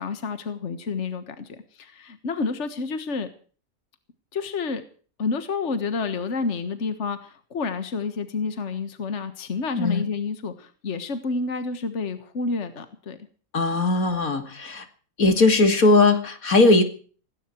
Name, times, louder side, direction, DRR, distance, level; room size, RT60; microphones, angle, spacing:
voice 1, 0.0-3.3 4.3-4.8 5.2-13.2, left 4 dB, 55° left, 10 dB, 1.8 m, -29 dB
voice 2, 9.8-10.1 13.5-14.8 15.2-16.8, left 3 dB, 85° left, 8 dB, 3.0 m, -19 dB
17.5 x 17.5 x 4.6 m, 0.42 s
omnidirectional pair, 1.5 m